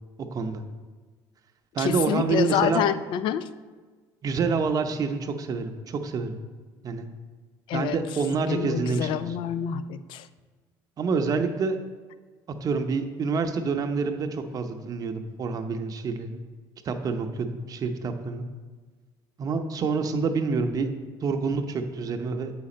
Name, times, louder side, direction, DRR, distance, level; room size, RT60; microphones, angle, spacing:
voice 1, 0.3-0.6 1.7-2.9 4.2-6.4 6.8-7.1 7.7-9.3 11.0-11.8 12.6-16.4 16.8-18.4 19.4-20.9 21.2-22.5, right 4 dB, 40° right, 6 dB, 0.7 m, -27 dB
voice 2, 1.8-3.5 7.7-8.0 8.5-10.3, left 9 dB, 65° left, 14 dB, 0.4 m, -27 dB
7.9 x 5.0 x 4.3 m, 1.4 s
supercardioid pair, 95°, 9 cm